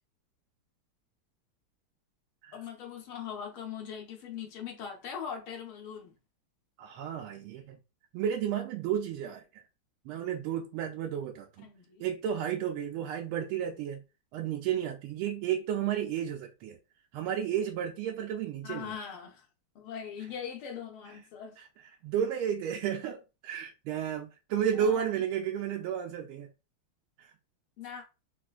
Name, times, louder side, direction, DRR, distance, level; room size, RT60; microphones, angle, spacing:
voice 1, 2.5-6.1 11.6-12.0 18.6-19.5 19.8-21.6 24.8-25.0 27.8-28.0, left 7 dB, 85° left, 1.7 m, -41 dB
voice 2, 6.8-7.8 8.1-9.6 10.0-11.7 12.0-14.0 14.3-16.8 17.1-19.0 22.0-26.5 27.2-27.3, right 9 dB, 90° right, 1.5 m, -32 dB
4.2 x 2.4 x 2.3 m
omnidirectional pair, 2.3 m